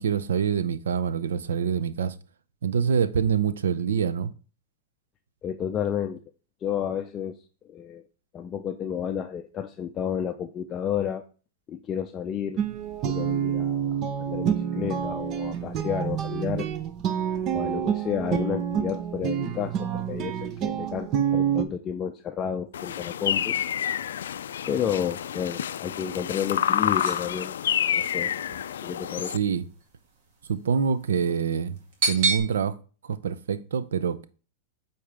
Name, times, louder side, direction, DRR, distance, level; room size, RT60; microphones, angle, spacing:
voice 1, 0.0-2.1 2.6-4.3 29.3-29.7 30.5-31.8 32.1-32.8 33.0-34.3, right 7 dB, 90° right, 0.6 m, -25 dB
voice 2, 5.4-6.2 6.6-7.4 7.7-8.0 8.3-11.3 11.7-12.6 13.0-16.7 17.5-23.6 24.7-27.5 27.9-28.3 28.7-29.4, left 8 dB, 25° left, 0.5 m, -31 dB
Guitar, 12.6-21.6, right 8 dB, 35° right, 0.7 m, -28 dB
sound 1, 22.7-29.4, left 9 dB, 85° left, 0.3 m, -28 dB
sound 2, 26.3-32.4, right 4 dB, 60° right, 2.3 m, -32 dB
8.6 x 4.3 x 3.5 m
hypercardioid pair, 135°, 0 cm